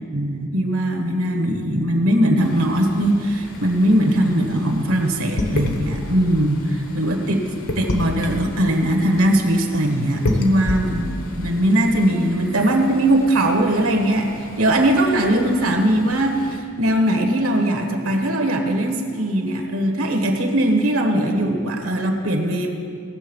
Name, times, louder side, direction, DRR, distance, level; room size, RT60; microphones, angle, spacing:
voice 1, 0.1-7.5 7.7-11.1 11.4-22.7, right 1 dB, 80° right, 4 dB, 1.4 m, -20 dB
sound 1, 2.4-16.6, left 1 dB, 85° left, 1.2 m, -31 dB
17.5 x 7.0 x 5.3 m, 2.3 s
head